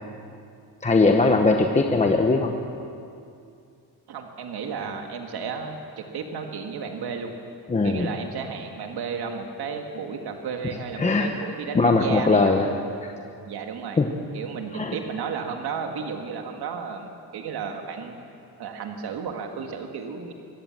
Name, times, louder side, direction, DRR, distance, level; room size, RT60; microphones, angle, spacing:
voice 1, 0.8-2.5 7.7-8.1 11.0-11.3 11.7-12.7 13.0-13.1 14.0-14.1 14.7-14.9, left 3 dB, 20° left, 3 dB, 0.9 m, -20 dB
voice 2, 4.1-7.3 7.8-12.7 13.4-14.0 14.3-18.2 18.6-20.3, right 6 dB, 75° right, 3 dB, 2.0 m, -33 dB
23.5 x 17.0 x 7.4 m, 2.4 s
wide cardioid pair, 180°, 39 cm